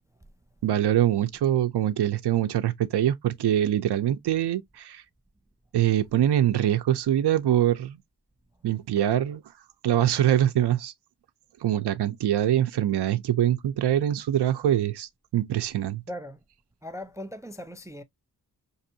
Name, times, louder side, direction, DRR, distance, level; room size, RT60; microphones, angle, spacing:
voice 1, 0.6-5.0 5.7-8.0 8.6-9.4 9.8-10.9 11.6-16.0, right 11 dB, 85° right, 0.6 m, -24 dB
voice 2, 16.1-16.4 16.8-18.0, equal, 10° right, 0.4 m, -38 dB
5.4 x 2.6 x 2.6 m
wide cardioid pair, 90°, 39 cm